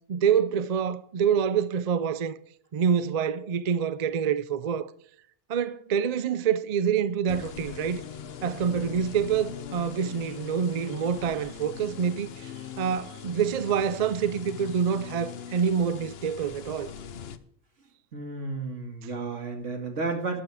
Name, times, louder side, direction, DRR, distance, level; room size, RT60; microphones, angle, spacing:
voice 1, 0.1-2.4 2.7-4.9 5.5-8.0 8.4-12.5 12.8-16.9, right 7 dB, 55° right, 0.4 m, -26 dB
sound 1, 7.3-17.4, left 8 dB, 55° left, 0.9 m, -41 dB
voice 2, 18.1-20.4, right 3 dB, 75° right, 2.4 m, -32 dB
12.5 x 10.5 x 4.9 m
omnidirectional pair, 1.3 m